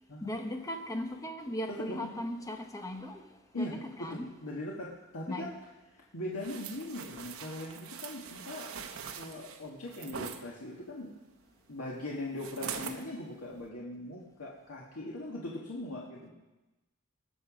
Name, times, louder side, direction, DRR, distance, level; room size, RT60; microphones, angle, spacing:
voice 1, 0.2-3.2 3.6-4.3 5.3-5.5, left 1 dB, 15° left, 4 dB, 1.0 m, -38 dB
voice 2, 1.7-2.1 3.5-5.5 5.9-8.7 9.2-11.1 11.7-16.3, left 1 dB, 85° left, -4 dB, 1.8 m, -40 dB
sound 1, 6.4-10.4 12.4-13.0 13.5-13.7, right 6 dB, 70° right, 0.9 m, -42 dB
19.5 x 6.9 x 5.2 m, 1.1 s
head